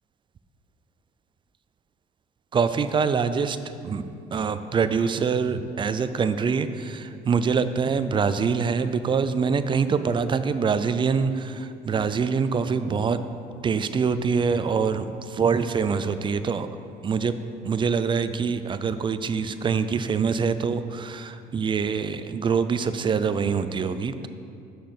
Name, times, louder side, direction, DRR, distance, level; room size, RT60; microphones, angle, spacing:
voice 1, 2.5-3.6 3.8-4.0 4.3-13.2 13.6-16.7 17.0-17.4 17.6-24.3, right 5 dB, 30° right, 11 dB, 0.4 m, -24 dB
6.4 x 6.0 x 6.5 m, 2.5 s
cardioid pair, 110°, 17 cm